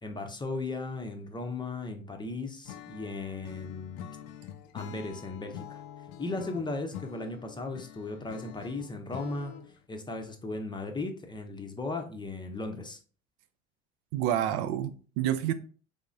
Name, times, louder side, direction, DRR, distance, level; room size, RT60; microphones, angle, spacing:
voice 1, 0.0-4.0 4.7-5.8 6.2-9.6 9.9-13.0, left 3 dB, 15° left, 0.6 m, -36 dB
Acoustic guitar / Strum, 2.7-9.9, left 10 dB, 55° left, 0.4 m, -46 dB
voice 2, 14.1-15.5, right 11 dB, 60° right, 0.4 m, -28 dB
3.9 x 3.4 x 2.4 m
hypercardioid pair, 70°, 34 cm